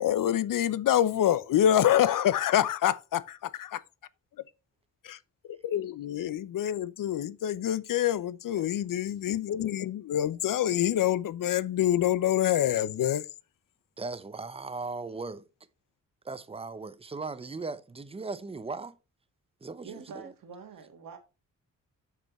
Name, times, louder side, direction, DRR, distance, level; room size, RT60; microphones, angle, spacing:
voice 1, 0.0-3.8 5.0-5.2 5.6-13.2, left 11 dB, 70° left, 0.6 m, -26 dB
voice 2, 14.0-15.4 16.2-19.0 19.6-20.3, right 3 dB, 15° right, 0.7 m, -38 dB
voice 3, 19.8-21.2, right 6 dB, 75° right, 1.7 m, -45 dB
7.5 x 6.6 x 3.1 m
wide cardioid pair, 130°, 33 cm